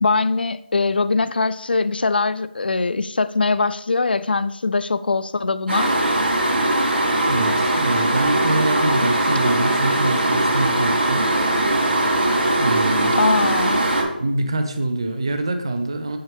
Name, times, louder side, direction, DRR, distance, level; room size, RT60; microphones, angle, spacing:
voice 1, 0.0-5.9 13.2-13.8, left 3 dB, 65° left, 15 dB, 0.4 m, -21 dB
sound 1, 5.7-14.0, right 1 dB, 90° right, 2.5 m, -20 dB
voice 2, 7.2-11.2 12.6-13.2 14.2-16.2, right 2 dB, 30° right, 6 dB, 0.5 m, -24 dB
7.6 x 5.5 x 3.5 m, 0.87 s
figure-of-eight pair, 180°, 6 cm